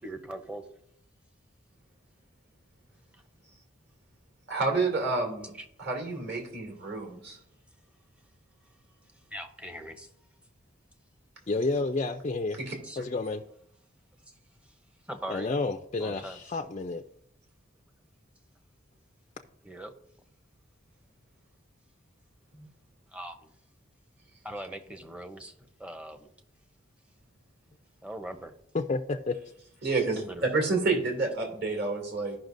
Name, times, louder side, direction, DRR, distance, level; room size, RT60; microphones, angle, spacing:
voice 1, 0.0-0.6 5.5-5.7 9.3-10.1 12.8-13.0 15.1-15.5 16.0-16.4 19.6-19.9 23.1-23.5 24.4-25.5 25.8-26.3 28.0-28.5 30.2-30.5, right 1 dB, 5° right, 7 dB, 0.8 m, -40 dB
voice 2, 4.5-5.5 5.8-7.4 12.7-12.8 22.5-22.7 29.8-32.4, right 3 dB, 55° right, 1 dB, 2.5 m, -29 dB
voice 3, 11.5-12.6 13.0-13.4 15.3-17.0 28.7-29.4, left 3 dB, 30° left, 4 dB, 0.4 m, -30 dB
15.5 x 5.7 x 2.6 m, 0.71 s
head